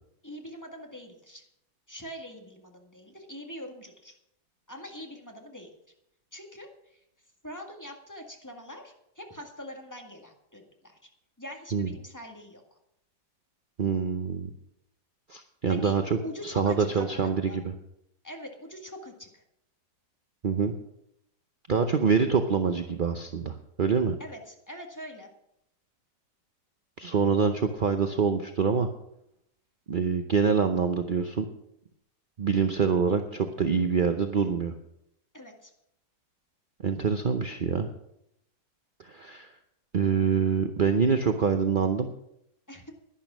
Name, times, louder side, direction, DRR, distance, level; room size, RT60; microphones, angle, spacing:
voice 1, 0.2-1.4 1.9-4.1 4.7-5.7 6.3-6.7 7.4-11.0 11.4-12.6 15.7-15.9 16.2-17.6 18.2-19.4 24.2-25.3 35.3-35.7 42.7-42.9, equal, 10° left, 2 dB, 1.7 m, -43 dB
voice 2, 13.8-14.5 15.3-16.2 16.4-17.7 20.4-20.7 21.7-24.2 27.0-28.9 29.9-31.5 32.4-34.7 36.8-37.9 39.0-39.5 39.9-42.1, right 6 dB, 55° right, 6 dB, 0.5 m, -25 dB
11.5 x 11.0 x 6.2 m, 0.78 s
omnidirectional pair, 1.9 m